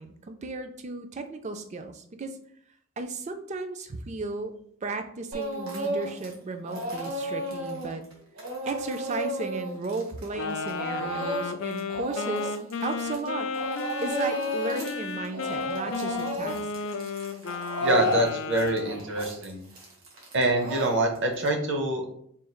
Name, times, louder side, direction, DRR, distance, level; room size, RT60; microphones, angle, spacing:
voice 1, 0.0-2.3 3.0-4.5 4.8-8.0 8.7-13.5 14.0-16.7, right 3 dB, 35° right, 7 dB, 0.4 m, -35 dB
Speech / Crying sobbing, 5.3-6.3 6.6-13.3 13.5-15.0 15.2-21.5, equal, 90° right, 1.4 m, -33 dB
Wind instrument woodwind instrument, 10.4-19.0, left 4 dB, 65° left, 0.4 m, -34 dB
voice 2, 17.8-19.6 20.3-22.2, right 2 dB, 60° right, 4 dB, 0.7 m, -25 dB
3.7 x 2.3 x 4.4 m, 0.66 s
head